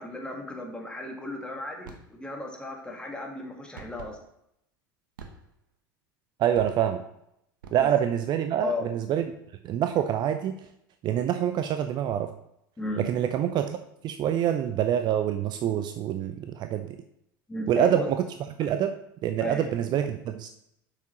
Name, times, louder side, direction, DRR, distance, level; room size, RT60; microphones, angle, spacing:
voice 1, 0.0-4.2 7.8-7.9 8.6-8.9 12.8-13.0 17.5-18.1 18.6-18.7 19.4-19.7, left 2 dB, 10° left, 1 dB, 1.6 m, -35 dB
sound 1, 1.8-2.2 3.8-4.2 5.2-5.7 6.5-7.0 7.6-8.2, right 5 dB, 70° right, 0.9 m, -47 dB
voice 2, 6.4-7.0 7.7-9.2 9.6-10.7 11.0-12.3 13.0-13.8 14.0-17.0 17.7-18.2 18.6-19.0 19.2-20.5, right 10 dB, 40° right, 8 dB, 0.5 m, -26 dB
7.2 x 5.8 x 3.0 m, 0.77 s
figure-of-eight pair, 80°, 11 cm